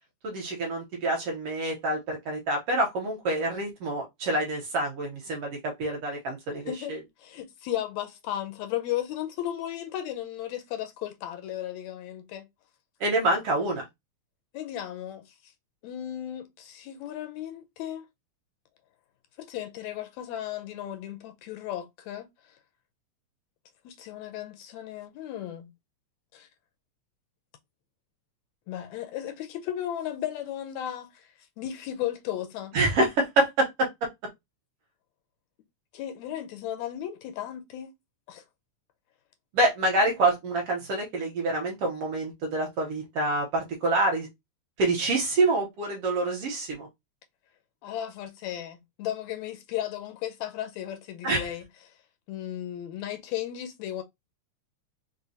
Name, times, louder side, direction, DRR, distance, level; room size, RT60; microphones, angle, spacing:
voice 1, 0.2-7.0 13.0-13.8 32.7-33.9 39.5-44.3 44.8-46.9 51.2-51.5, right 2 dB, 65° right, 1.7 m, -26 dB
voice 2, 7.2-12.5 14.5-15.5 15.8-18.1 19.4-22.3 23.9-25.7 26.3-26.5 28.7-31.3 31.6-32.8 35.9-37.9 38.3-38.4 47.8-51.6 52.3-54.0, left 11 dB, 80° left, 1.8 m, -35 dB
4.9 x 2.2 x 2.6 m
omnidirectional pair, 3.3 m